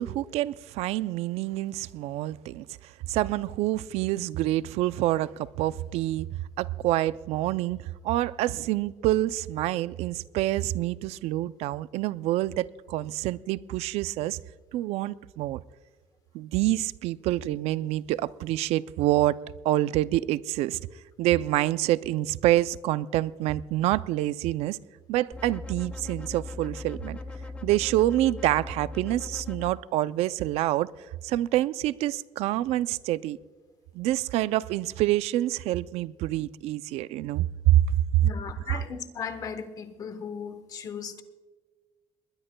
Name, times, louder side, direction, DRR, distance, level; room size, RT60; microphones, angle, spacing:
voice 1, 0.0-2.7 3.1-6.3 6.6-7.8 8.0-14.4 14.7-15.6 16.3-19.4 19.6-20.8 21.2-24.8 25.1-27.2 27.6-30.9 31.2-33.4 33.9-38.3 38.7-38.8, right 15 dB, 75° right, 0.4 m, -27 dB
sound 1, 25.3-29.7, left 2 dB, 10° left, 0.6 m, -39 dB
voice 2, 38.2-41.2, left 6 dB, 35° left, 1.0 m, -37 dB
20.5 x 20.5 x 2.2 m
cardioid pair, 180°, 11 cm